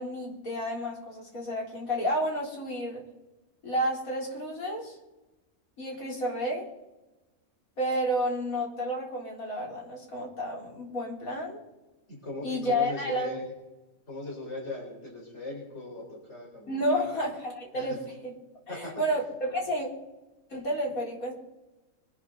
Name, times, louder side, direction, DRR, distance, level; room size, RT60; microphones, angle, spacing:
voice 1, 0.0-3.0 3.6-5.0 5.8-6.7 7.8-11.6 12.4-13.3 16.7-18.3 18.7-19.9 20.5-21.3, equal, 75° left, -2 dB, 4.3 m, -31 dB
voice 2, 12.1-13.4 14.1-17.1 17.7-17.9 18.7-19.0, left 2 dB, 50° left, -2 dB, 5.2 m, -39 dB
24.5 x 11.5 x 4.1 m, 1.1 s
omnidirectional pair, 1.5 m